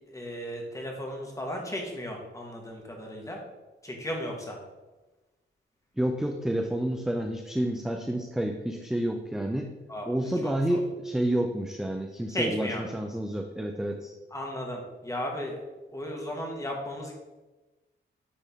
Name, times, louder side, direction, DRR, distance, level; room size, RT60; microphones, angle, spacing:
voice 1, 0.1-3.4 3.8-4.6 9.9-10.1 10.4-10.8 12.3-12.8 14.3-15.6 15.9-17.1, equal, 15° left, 0 dB, 1.3 m, -35 dB
voice 2, 6.0-9.7 10.1-14.1, right 1 dB, ahead, 3 dB, 0.3 m, -29 dB
9.9 x 3.5 x 3.5 m, 1.1 s
wide cardioid pair, 145°, 21 cm